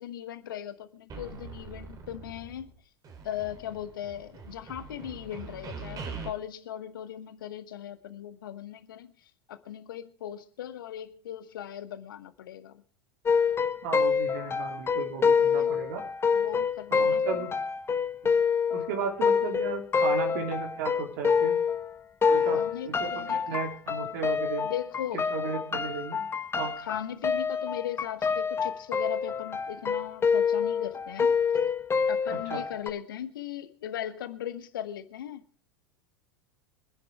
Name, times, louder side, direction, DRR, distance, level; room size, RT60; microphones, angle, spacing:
voice 1, 0.0-2.7 3.2-12.8 15.6-15.7 16.3-17.5 22.5-23.6 24.6-25.2 26.8-31.4 32.1-35.4, left 10 dB, 65° left, 12 dB, 1.3 m, -38 dB
sound 1, 1.1-2.8 3.0-6.3, right 4 dB, 30° right, 3.1 m, -43 dB
sound 2, 13.3-21.9 22.2-32.9, left 6 dB, 20° left, 1.3 m, -27 dB
voice 2, 13.8-16.0 16.9-17.5 18.7-21.6 22.2-24.7 25.3-26.2 26.6-26.8 32.3-32.7, right 5 dB, 55° right, 2 dB, 3.1 m, -35 dB
25.0 x 10.5 x 3.5 m, 0.42 s
figure-of-eight pair, 85°, 12 cm